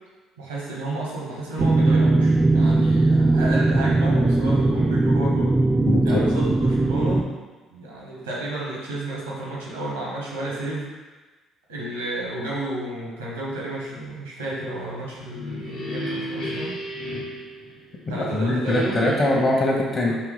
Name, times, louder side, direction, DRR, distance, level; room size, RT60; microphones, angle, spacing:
voice 1, 0.4-5.5 6.0-7.3 7.7-10.9 11.7-16.8 18.1-19.0 20.0-20.2, right 1 dB, 90° right, -4 dB, 1.1 m, -31 dB
sound 1, 1.6-7.2, right 2 dB, 20° right, 0.3 m, -19 dB
voice 2, 5.9-6.2 18.1-20.2, left 1 dB, 40° left, -2 dB, 0.9 m, -22 dB
sound 2, 15.1-18.2 18.6-19.6, equal, 70° left, 1.1 m, -33 dB
4.3 x 2.9 x 3.9 m, 1.3 s
hypercardioid pair, 55°, 0 cm